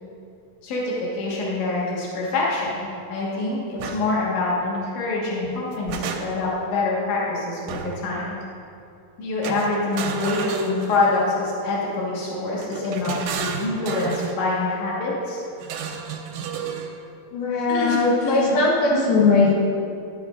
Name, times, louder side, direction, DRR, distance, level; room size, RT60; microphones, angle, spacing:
voice 1, 0.6-8.3 9.2-15.4 17.7-18.6, left 2 dB, 60° left, -5 dB, 2.8 m, -25 dB
sound 1, 3.8-4.0 5.4-6.6 7.7-8.1 9.4-11.3 12.6-14.4 15.6-16.9, right 6 dB, 80° right, 2.1 m, -32 dB
voice 2, 17.3-19.5, left 3 dB, 85° left, -3 dB, 2.9 m, -19 dB
11.0 x 8.7 x 2.5 m, 2.6 s
omnidirectional pair, 4.3 m